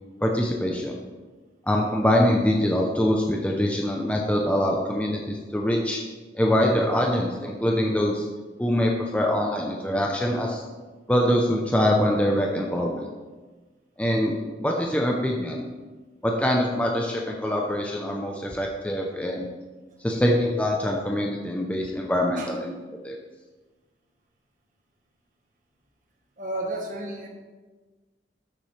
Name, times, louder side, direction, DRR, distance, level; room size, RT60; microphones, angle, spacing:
voice 1, 0.2-1.0 1.7-6.0 6.3-8.3 8.6-10.6 11.1-13.1 14.0-15.7 16.2-19.5 20.0-22.8 23.0-23.2, left 1 dB, 10° left, 0 dB, 0.7 m, -24 dB
voice 2, 26.4-27.3, right 1 dB, 45° right, 0 dB, 1.4 m, -32 dB
13.0 x 7.2 x 3.3 m, 1.3 s
head